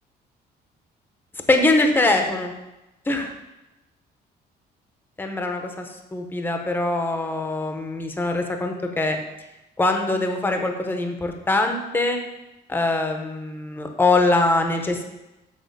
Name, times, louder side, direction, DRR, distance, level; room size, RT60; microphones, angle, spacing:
voice 1, 1.5-2.5 3.1-3.3 5.2-9.2 9.8-12.2 12.7-15.0, left 2 dB, 10° left, 4 dB, 0.8 m, -23 dB
6.3 x 6.0 x 6.7 m, 0.96 s
cardioid pair, 170°, 17 cm